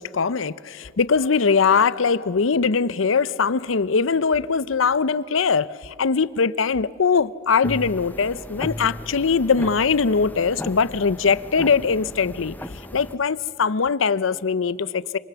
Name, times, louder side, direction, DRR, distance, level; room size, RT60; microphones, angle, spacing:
voice 1, 0.0-12.5 12.9-15.2, left 5 dB, 85° left, 0.6 m, -21 dB
sound 1, 7.6-13.2, left 1 dB, 10° left, 0.8 m, -36 dB
27.0 x 25.5 x 6.9 m
head